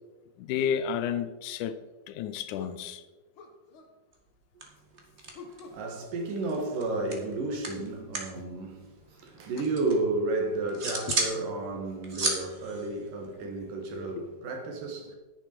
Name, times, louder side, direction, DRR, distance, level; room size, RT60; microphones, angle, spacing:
voice 1, 0.4-1.8 2.1-3.0 11.1-11.2 13.4-13.5 13.9-14.3, left 8 dB, 80° left, 1.9 m, -32 dB
sound 1, 1.4-1.6 2.5-2.8 3.4-3.9 5.3-5.9 6.5-7.2 7.7-7.9 9.5-9.6 10.3-10.5 11.0-11.2 11.9-12.0 12.7-12.8, left 4 dB, 60° left, 1.4 m, -49 dB
sound 2, 4.1-4.3 4.6-5.8 6.1-8.4 8.6-10.0 10.4-11.4 11.7-13.8, right 2 dB, 50° right, 0.7 m, -34 dB
voice 2, 5.4-15.2, right 2 dB, 70° right, 3.2 m, -32 dB
11.0 x 10.5 x 4.5 m
omnidirectional pair, 4.1 m